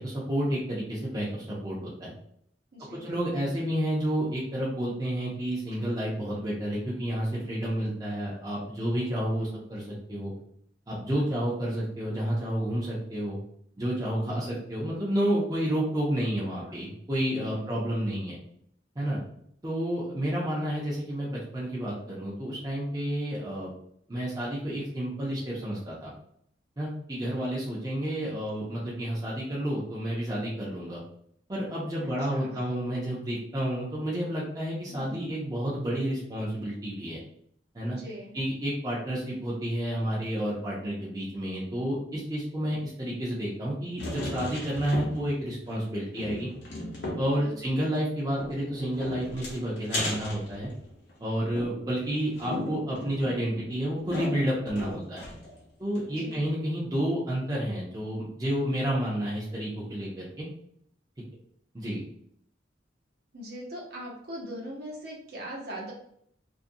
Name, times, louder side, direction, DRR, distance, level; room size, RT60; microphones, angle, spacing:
voice 1, 0.0-2.1 2.9-10.3 10.9-13.4 13.8-18.4 19.0-19.2 19.6-23.7 24.1-26.1 26.8-31.0 31.5-37.2 37.7-38.0 38.3-46.5 47.2-50.7 51.2-55.3 55.8-60.5 61.7-62.0, equal, 20° right, -6 dB, 0.5 m, -30 dB
voice 2, 2.7-3.0 9.4-9.6 16.6-16.8 17.5-17.9 28.3-28.6 32.0-32.6 34.9-35.2 37.9-38.3 47.3-47.8 56.1-56.4 63.3-65.9, equal, 55° right, -3 dB, 0.8 m, -41 dB
sound 1, 44.0-45.4 45.7-45.8 46.1-47.4 48.4-51.1 51.6-55.6 55.9-56.0 56.3-56.4, left 1 dB, 60° left, 0.7 m, -36 dB
2.5 x 2.1 x 2.6 m, 0.68 s
head